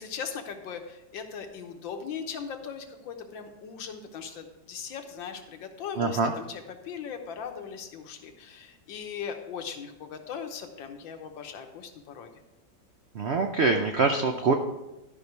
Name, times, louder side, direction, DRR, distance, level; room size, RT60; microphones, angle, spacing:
voice 1, 0.0-12.3, left 7 dB, 80° left, 5 dB, 1.7 m, -39 dB
voice 2, 6.0-6.3 13.2-14.5, right 4 dB, 80° right, 5 dB, 0.5 m, -24 dB
13.0 x 5.5 x 4.6 m, 0.97 s
omnidirectional pair, 2.0 m